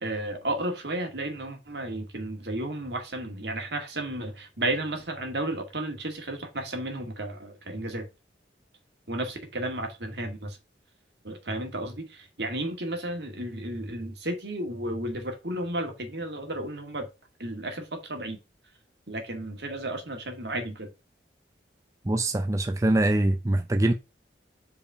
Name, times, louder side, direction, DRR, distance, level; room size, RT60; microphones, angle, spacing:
voice 1, 0.0-8.1 9.1-10.6 11.2-17.1 17.4-18.4 19.1-20.9, right 1 dB, 70° right, 2.1 m, -33 dB
voice 2, 22.1-23.9, right 1 dB, 15° right, 0.4 m, -23 dB
5.1 x 4.8 x 5.6 m
head